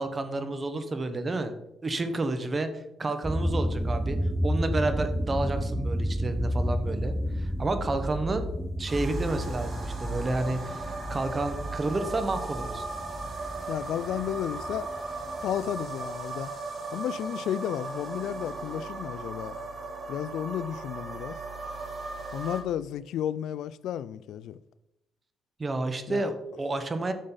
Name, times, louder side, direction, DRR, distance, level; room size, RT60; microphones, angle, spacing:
voice 1, 0.0-1.5 1.8-4.2 4.4-8.5 8.8-12.8 25.6-27.1, right 2 dB, 30° right, 1.2 m, -30 dB
sound 1, 3.2-15.4, equal, 5° right, 0.7 m, -31 dB
sound 2, 8.9-22.6, right 3 dB, 50° right, 2.9 m, -37 dB
voice 2, 13.7-14.9 15.4-16.5 16.9-19.6 20.1-21.4 22.3-24.6 26.1-26.2, left 10 dB, 80° left, 0.3 m, -32 dB
9.9 x 6.5 x 3.9 m
cardioid pair, 90°, 0 cm